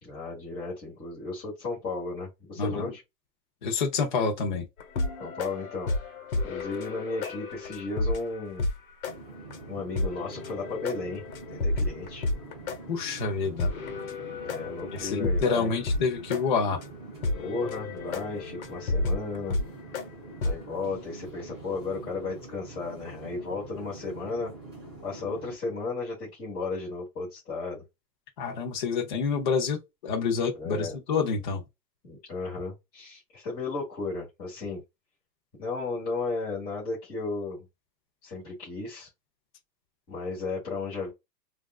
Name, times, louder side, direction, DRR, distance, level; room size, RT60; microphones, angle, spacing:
voice 1, 0.0-3.0 5.2-5.9 6.4-8.7 9.7-11.2 11.5-12.2 14.2-15.7 17.4-19.6 20.4-24.5 25.0-27.8 30.5-31.0 32.0-34.8 35.6-37.6 38.2-39.1 40.1-41.1, left 3 dB, 15° left, 1.3 m, -34 dB
voice 2, 2.6-2.9 3.6-4.7 12.9-13.7 14.9-16.8 28.4-31.6, left 5 dB, 30° left, 0.6 m, -28 dB
sound 1, 4.8-8.8 9.0-9.1 9.5-9.6 10.0-12.8 13.2-13.3 13.6-16.1 16.3-16.4 16.8-16.9 17.2-20.0 20.4-20.6, left 2 dB, 55° left, 1.2 m, -31 dB
sound 2, 9.0-25.6, right 2 dB, 15° right, 0.4 m, -45 dB
3.4 x 2.4 x 2.3 m
hypercardioid pair, 155°, 50 cm